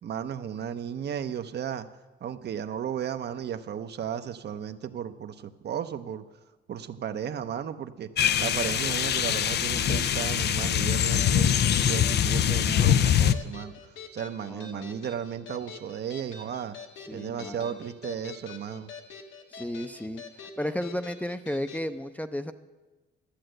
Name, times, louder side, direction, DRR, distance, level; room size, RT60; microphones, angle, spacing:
voice 1, 0.0-1.9 2.2-6.2 6.7-8.1 8.4-16.8 17.1-18.9, right 8 dB, 55° right, 9 dB, 0.8 m, -34 dB
sound 1, 8.2-21.9, left 5 dB, 85° left, 1.4 m, -46 dB
sound 2, 8.2-13.3, left 9 dB, 55° left, 0.5 m, -23 dB
voice 2, 14.5-15.1 17.1-17.7 19.5-20.2 20.6-22.5, left 1 dB, 5° left, 9 dB, 0.6 m, -33 dB
13.0 x 7.8 x 7.8 m, 1.2 s
cardioid pair, 90°, 20 cm